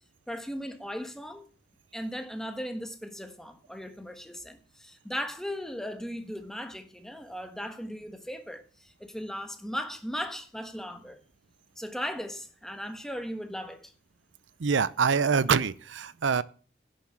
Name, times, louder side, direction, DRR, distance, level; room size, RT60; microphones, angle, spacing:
voice 1, 0.3-1.4 1.9-11.2 11.8-13.9, equal, ahead, 1.4 m, -37 dB
voice 2, 14.6-16.4, right 5 dB, 90° right, 0.6 m, -25 dB
11.0 x 7.2 x 7.3 m
head